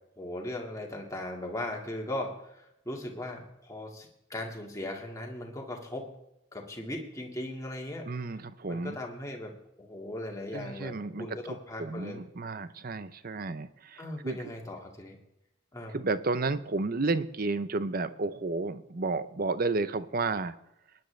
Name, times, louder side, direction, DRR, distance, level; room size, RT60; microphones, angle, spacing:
voice 1, 0.2-6.1 6.5-8.4 8.6-12.2 14.0-15.2 15.7-16.0, left 1 dB, 15° left, 0 dB, 1.9 m, -38 dB
voice 2, 8.1-9.0 10.5-11.3 11.8-14.4 15.9-20.5, right 3 dB, 45° right, 14 dB, 0.6 m, -32 dB
20.0 x 10.5 x 3.3 m, 0.84 s
head